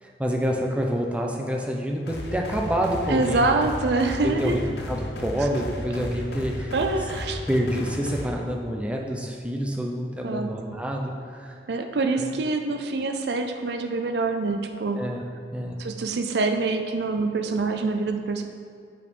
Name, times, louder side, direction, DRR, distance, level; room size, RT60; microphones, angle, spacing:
voice 1, 0.0-3.5 4.2-4.6 4.9-6.7 7.5-11.6 12.2-12.3 15.0-15.2 15.5-15.8, equal, 5° right, 0 dB, 0.6 m, -27 dB
sound 1, 2.1-8.3, left 1 dB, 65° left, 0.9 m, -34 dB
voice 2, 3.1-4.6 5.5-5.6 6.7-7.4 10.2-10.6 11.7-15.1 15.8-18.4, right 3 dB, 65° right, 6 dB, 0.5 m, -25 dB
6.3 x 5.7 x 5.3 m, 2.3 s
head